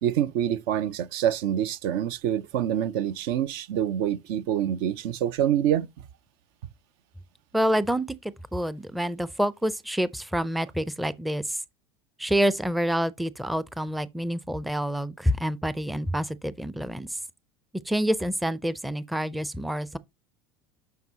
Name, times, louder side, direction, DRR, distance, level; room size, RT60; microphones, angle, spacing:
voice 1, 0.0-5.9, right 10 dB, 65° right, 0.5 m, -26 dB
voice 2, 7.5-11.6 12.2-17.2 17.8-20.0, equal, ahead, 0.5 m, -27 dB
9.2 x 4.7 x 2.8 m
hypercardioid pair, 75°, 14 cm